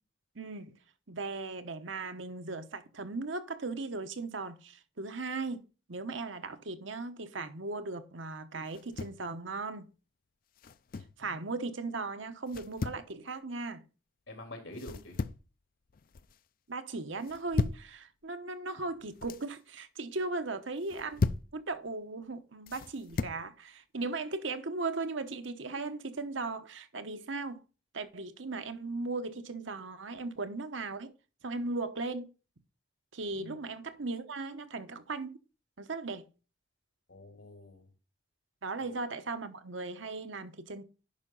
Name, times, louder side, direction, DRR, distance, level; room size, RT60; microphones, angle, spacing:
voice 1, 0.3-0.8 1.1-9.9 11.2-13.8 16.7-21.2 21.5-27.6 27.9-31.1 31.4-32.3 33.1-35.4 35.8-36.3 38.6-40.8, right 3 dB, 80° right, 1.1 m, -37 dB
sound 1, 8.7-9.2 10.6-11.2 12.5-13.1 14.8-15.5 15.9-16.4 17.2-17.9 18.9-19.5 20.8-21.5 22.7-23.4, left 4 dB, 50° left, 0.4 m, -35 dB
voice 2, 14.3-15.2 33.3-33.6 37.1-37.9 38.8-38.9, left 1 dB, 85° left, 3.2 m, -47 dB
10.5 x 5.6 x 3.9 m
head